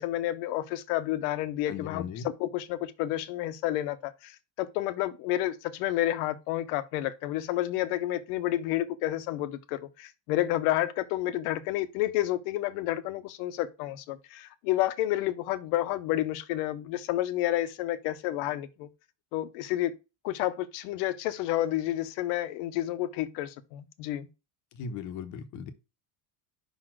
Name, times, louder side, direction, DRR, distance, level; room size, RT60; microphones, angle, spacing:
voice 1, 0.0-18.9 19.3-19.9 20.2-24.3, left 14 dB, 65° left, 0.9 m, -30 dB
voice 2, 1.7-2.3 24.7-25.7, left 6 dB, 40° left, 0.9 m, -37 dB
5.6 x 4.0 x 6.1 m
cardioid pair, 175°, 49 cm